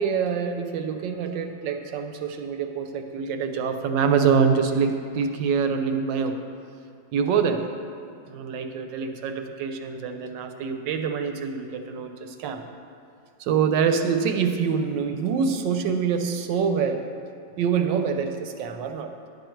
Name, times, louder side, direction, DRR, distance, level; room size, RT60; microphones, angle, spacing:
voice 1, 0.0-6.4 7.1-7.6 8.2-12.6 13.4-17.1 17.6-19.1, right 6 dB, 70° right, 6 dB, 1.3 m, -25 dB
10.5 x 7.8 x 4.5 m, 2.4 s
omnidirectional pair, 2.1 m